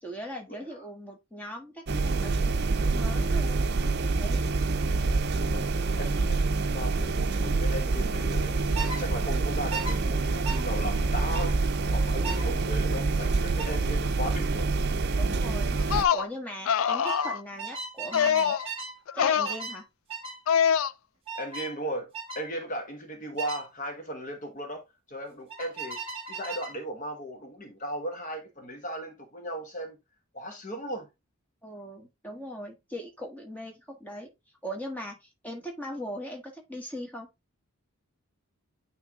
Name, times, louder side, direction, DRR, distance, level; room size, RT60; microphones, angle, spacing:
voice 1, 0.0-3.6 4.0-4.4 15.2-18.6 19.1-19.9 31.6-34.3 34.6-37.3, equal, 5° left, 1.5 m, -39 dB
sound 1, 1.9-16.0, right 3 dB, 50° right, 0.6 m, -26 dB
voice 2, 6.0-6.4 6.7-14.7 21.4-24.8 25.1-26.0 26.3-30.0 30.3-31.1, equal, 35° left, 1.2 m, -37 dB
sound 2, 8.7-9.0 9.7-10.0 10.4-10.6 11.3-11.5 12.2-12.5 13.6-13.8 15.2-15.5 15.8-16.1 17.0-19.0 19.4-19.8 20.1-20.4 21.3-21.7 22.1-22.4 23.4-23.6 25.5-26.8, right 4 dB, 25° right, 1.9 m, -37 dB
sound 3, 15.8-16.3 16.7-17.4 18.1-18.7 19.1-19.5 20.5-20.9, left 8 dB, 75° left, 0.4 m, -24 dB
9.1 x 3.3 x 3.6 m
head